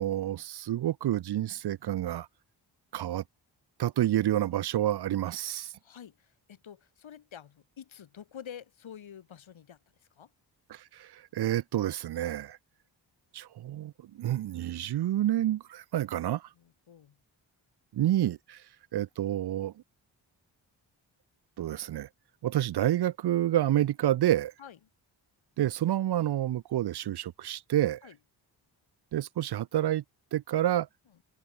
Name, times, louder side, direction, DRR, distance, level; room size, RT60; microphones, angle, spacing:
voice 1, 0.0-2.3 2.9-3.2 3.8-5.7 10.7-12.6 13.3-13.9 14.2-16.4 17.9-18.6 18.9-19.7 21.6-22.1 22.4-24.5 25.6-28.0 29.1-30.0 30.3-30.9, right 12 dB, 55° right, 0.6 m, -28 dB
voice 2, 5.8-10.3 16.5-17.2 24.6-24.8 28.0-28.2 31.1-31.2, left 9 dB, 75° left, 5.6 m, -48 dB
open air
supercardioid pair, 45°, 47 cm